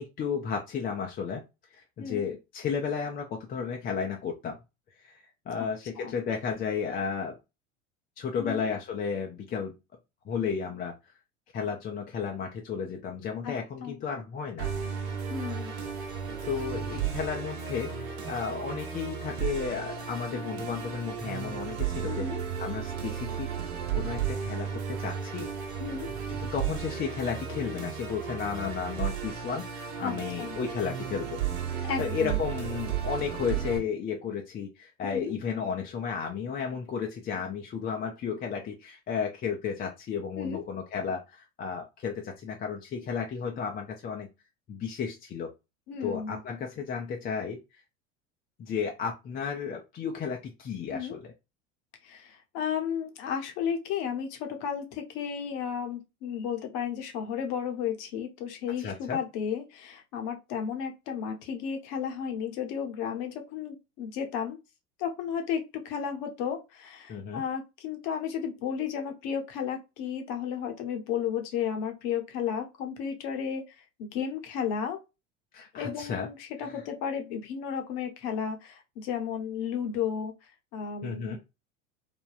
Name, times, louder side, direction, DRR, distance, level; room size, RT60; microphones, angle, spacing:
voice 1, 0.0-1.4 1.7-4.6 5.0-7.4 8.2-9.7 10.3-10.9 11.5-14.7 16.4-22.3 22.6-23.5 23.9-25.5 25.9-31.4 31.7-44.3 44.7-45.5 46.0-47.6 48.6-51.3 58.8-59.2 67.1-67.4 75.5-76.3 76.6-76.8 81.0-81.4, left 6 dB, 25° left, 0.5 m, -33 dB
voice 2, 2.0-2.3 5.6-5.7 6.0-6.2 8.4-8.6 13.4-13.6 13.8-14.0 15.3-15.7 22.0-22.4 25.8-26.1 30.0-30.5 31.8-32.4 35.0-35.3 40.4-40.6 45.9-46.4 50.9-51.2 52.0-64.6 65.0-73.6 74.0-75.0 75.7-80.3 80.7-81.4, left 7 dB, 55° left, 0.9 m, -33 dB
Musical instrument, 14.6-33.8, right 8 dB, 60° right, 1.0 m, -34 dB
3.3 x 2.2 x 2.5 m
hypercardioid pair, 80°, 37 cm